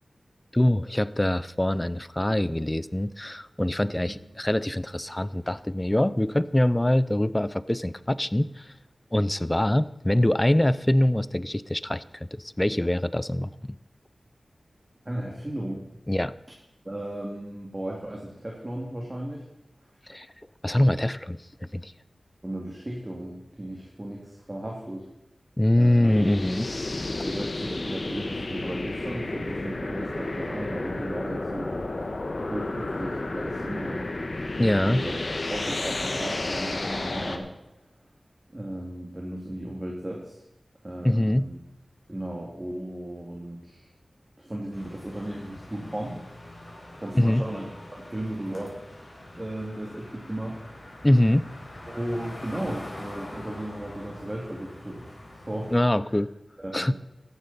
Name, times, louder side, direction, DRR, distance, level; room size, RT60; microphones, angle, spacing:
voice 1, 0.5-8.7 9.1-13.8 16.1-16.3 20.1-20.3 20.6-21.9 25.6-26.7 34.6-35.0 41.0-41.5 47.1-47.5 51.0-51.5 55.7-56.3 56.7-56.9, left 1 dB, 15° left, 17 dB, 0.5 m, -24 dB
voice 2, 15.1-15.8 16.8-19.4 22.4-25.1 25.8-26.1 27.2-31.8 32.5-34.1 34.9-35.2 35.5-37.5 38.5-40.4 40.8-41.6 42.1-43.9 44.4-46.3 46.6-48.7 49.4-50.6 51.9-55.7 56.1-56.2 56.6-56.9, right 1 dB, 25° right, -2 dB, 2.3 m, -35 dB
sound 1, 26.0-37.4, left 2 dB, 55° left, 1.3 m, -32 dB
sound 2, 44.7-55.8, left 1 dB, 35° left, 4.9 m, -44 dB
14.0 x 11.0 x 4.1 m, 0.92 s
wide cardioid pair, 60°, 0 cm